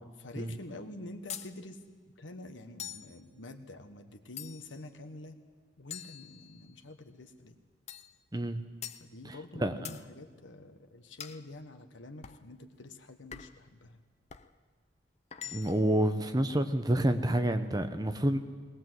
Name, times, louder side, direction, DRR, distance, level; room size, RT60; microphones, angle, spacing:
voice 1, 0.0-1.8 2.2-5.4 5.8-7.6 9.0-14.0, left 2 dB, 80° left, 7 dB, 1.4 m, -47 dB
sound 1, 1.3-1.5 2.8-3.1 4.4-4.8 5.9-6.8 7.9-8.2 8.8-9.1 9.8-10.1 11.2-11.4 12.2-12.5 13.3-13.6 14.3-14.5 15.3-15.9, left 9 dB, 35° left, 0.6 m, -44 dB
voice 2, 8.3-8.6 9.2-9.8 15.5-18.4, right 1 dB, 20° right, 8 dB, 0.9 m, -28 dB
20.0 x 19.0 x 7.8 m, 1.5 s
head